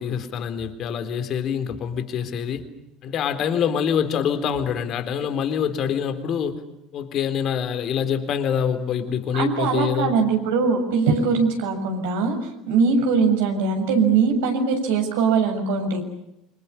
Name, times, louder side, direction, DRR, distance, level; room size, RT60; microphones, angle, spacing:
voice 1, 0.0-2.6 3.0-6.6 6.9-10.2, left 8 dB, 50° left, 9 dB, 3.9 m, -25 dB
voice 2, 9.3-16.0, right 5 dB, 70° right, 3 dB, 7.1 m, -21 dB
28.5 x 26.5 x 7.1 m, 0.83 s
hypercardioid pair, 70°, 0 cm